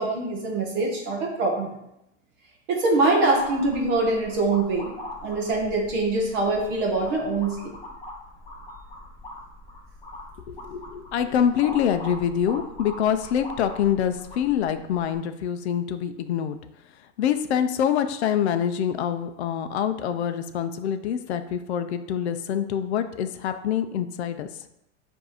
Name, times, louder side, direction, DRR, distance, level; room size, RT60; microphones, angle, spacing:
voice 1, 0.0-1.7 2.7-4.9 5.2-7.8, right 2 dB, 20° right, -1 dB, 0.4 m, -24 dB
sound 1, 3.4-15.1, left 1 dB, 10° left, 0.7 m, -42 dB
voice 2, 10.5-16.6 17.2-24.5, left 9 dB, 60° left, 9 dB, 0.5 m, -25 dB
7.4 x 2.7 x 4.8 m, 0.84 s
supercardioid pair, 175°, 37 cm